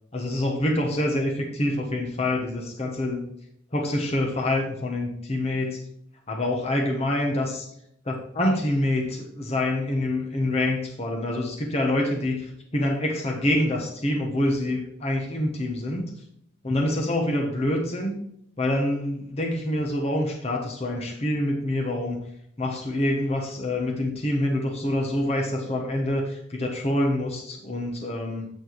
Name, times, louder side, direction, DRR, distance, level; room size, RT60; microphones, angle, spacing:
voice 1, 0.1-3.3 3.7-5.8 6.3-7.7 8.0-16.1 16.6-18.2 18.6-22.3 22.6-28.5, left 1 dB, 30° left, 1 dB, 1.0 m, -26 dB
8.3 x 4.4 x 4.6 m, 0.73 s
head